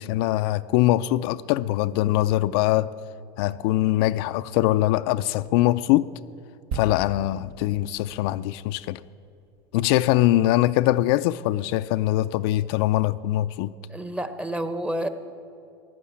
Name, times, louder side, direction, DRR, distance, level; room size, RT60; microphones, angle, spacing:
voice 1, 0.0-2.9 3.4-6.1 6.7-9.0 9.7-13.7, left 15 dB, 65° left, 0.4 m, -22 dB
sound 1, 6.7-10.4 10.6-10.8, right 4 dB, 70° right, 1.3 m, -39 dB
voice 2, 13.9-15.1, right 1 dB, 10° right, 0.8 m, -29 dB
15.5 x 11.0 x 8.4 m
supercardioid pair, 140°, 14 cm